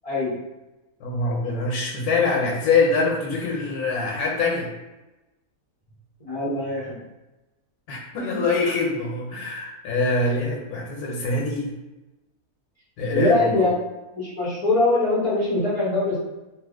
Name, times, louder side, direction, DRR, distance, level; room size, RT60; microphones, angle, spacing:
voice 1, 0.0-0.3 6.2-7.0 13.1-13.7 14.1-16.2, left 2 dB, 40° left, -7 dB, 0.5 m, -22 dB
voice 2, 1.0-4.7 7.9-11.7 13.0-13.7, left 3 dB, 85° left, -1 dB, 1.3 m, -24 dB
3.2 x 2.1 x 3.5 m, 1.0 s
omnidirectional pair, 1.6 m